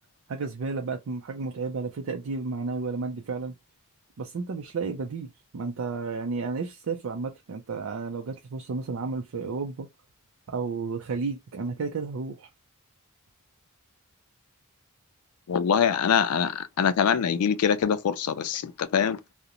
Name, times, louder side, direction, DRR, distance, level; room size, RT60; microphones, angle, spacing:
voice 1, 0.3-3.5 4.2-5.3 5.5-9.9 10.5-12.5, right 4 dB, 65° right, 0.4 m, -32 dB
voice 2, 15.5-19.2, left 7 dB, 90° left, 0.4 m, -24 dB
2.4 x 2.1 x 2.8 m
head